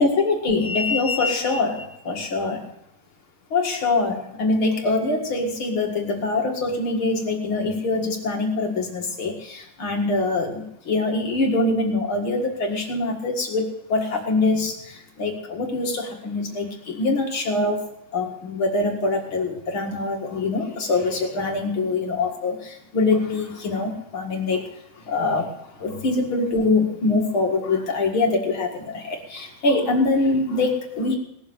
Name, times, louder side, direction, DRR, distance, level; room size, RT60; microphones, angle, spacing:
voice 1, 0.0-2.7 3.5-17.8 18.1-31.2, left 3 dB, 45° left, 1 dB, 1.9 m, -24 dB
19.5 x 7.2 x 8.0 m, 0.77 s
omnidirectional pair, 4.8 m